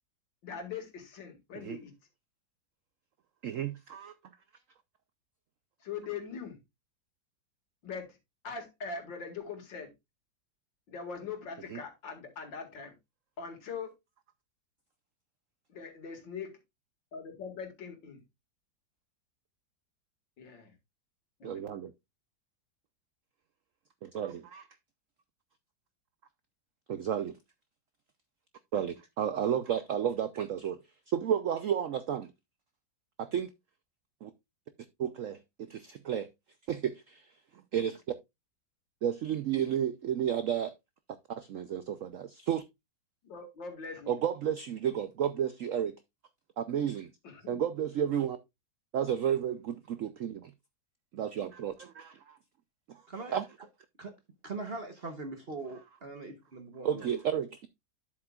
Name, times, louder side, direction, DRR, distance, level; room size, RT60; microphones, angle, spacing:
voice 1, 0.4-1.9 5.8-6.6 7.8-8.2 8.4-9.9 10.9-12.9 13.4-13.9 15.7-16.6 17.1-18.2 20.4-20.7 21.4-21.7 43.2-44.2 47.2-47.6, left 5 dB, 75° left, 2.7 m, -41 dB
voice 2, 3.4-4.1 11.7-11.8 21.4-21.9 24.0-24.7 26.9-27.4 28.7-30.8 31.1-32.3 33.2-33.5 34.2-34.3 35.0-36.3 36.7-37.3 37.7-38.0 39.0-40.7 41.3-42.6 44.1-46.0 46.6-47.1 47.5-48.4 48.9-50.5 51.1-52.4 52.9-53.0 53.3-53.4 56.8-57.7, right 9 dB, 75° right, 0.7 m, -32 dB
voice 3, 54.4-57.0, right 3 dB, 40° right, 1.0 m, -41 dB
9.8 x 7.7 x 2.3 m
omnidirectional pair, 2.0 m